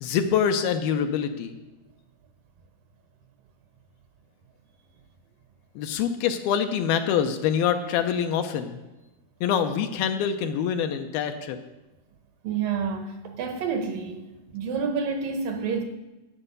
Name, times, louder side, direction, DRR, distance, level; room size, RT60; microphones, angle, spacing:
voice 1, 0.0-1.6 5.8-8.8 9.4-11.6, left 8 dB, 75° left, 7 dB, 2.5 m, -25 dB
voice 2, 12.4-14.2 14.5-15.8, right 5 dB, 75° right, 6 dB, 2.3 m, -28 dB
12.0 x 8.7 x 6.7 m, 1.1 s
omnidirectional pair, 4.6 m